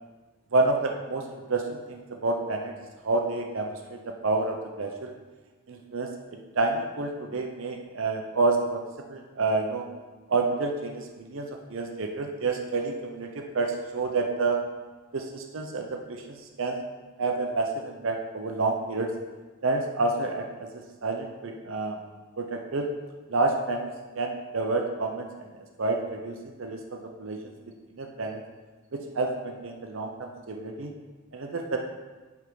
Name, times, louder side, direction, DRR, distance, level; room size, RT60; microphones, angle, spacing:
voice 1, 0.5-2.8 3.0-5.2 5.7-6.1 6.6-8.8 9.1-9.9 10.3-14.6 15.1-16.8 17.2-19.1 19.6-22.0 22.4-22.9 23.3-23.9 24.2-25.3 25.8-27.5 27.9-28.4 28.9-30.9 31.3-31.8, right 3 dB, 65° right, 3 dB, 0.7 m, -29 dB
8.9 x 3.6 x 4.7 m, 1.3 s
head